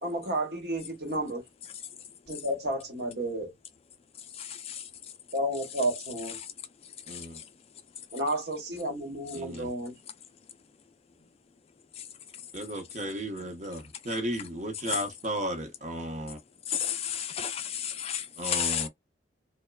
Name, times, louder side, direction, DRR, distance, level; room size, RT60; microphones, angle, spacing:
voice 1, 0.0-1.4 2.3-3.5 5.3-6.4 8.1-9.9, right 1 dB, 60° right, 1.0 m, -31 dB
voice 2, 4.4-4.8 16.7-18.9, left 9 dB, 35° left, 0.3 m, -32 dB
voice 3, 7.1-7.4 9.3-9.7 12.5-16.4 18.4-18.9, right 1 dB, 40° right, 0.8 m, -34 dB
3.0 x 2.1 x 2.2 m
head